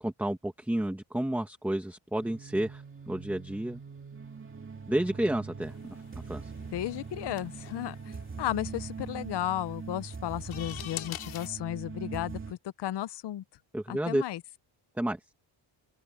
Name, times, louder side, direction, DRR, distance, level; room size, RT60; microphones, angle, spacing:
voice 1, 0.0-3.8 4.9-6.0 6.3-6.5 13.7-14.2 15.0-15.2, right 1 dB, 5° right, 1.1 m, -31 dB
sound 1, 2.2-12.5, right 5 dB, 25° right, 3.1 m, -42 dB
sound 2, 5.6-11.5, left 11 dB, 80° left, 2.5 m, -46 dB
voice 2, 6.7-13.4 13.9-14.4, left 13 dB, 55° left, 0.7 m, -34 dB
open air
wide cardioid pair, 170°, 48 cm